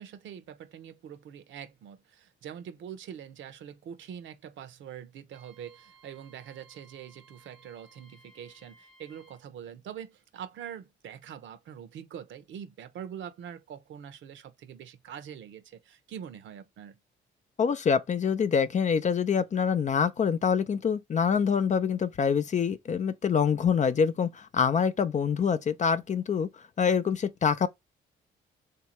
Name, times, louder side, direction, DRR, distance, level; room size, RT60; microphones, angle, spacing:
voice 1, 0.0-17.0, right 9 dB, 75° right, 0.8 m, -44 dB
Wind instrument woodwind instrument, 5.3-9.4, right 3 dB, 90° right, 1.3 m, -59 dB
voice 2, 17.6-26.5 26.8-27.7, left 6 dB, 35° left, 0.5 m, -25 dB
3.4 x 2.7 x 3.0 m
cardioid pair, 90°, 20 cm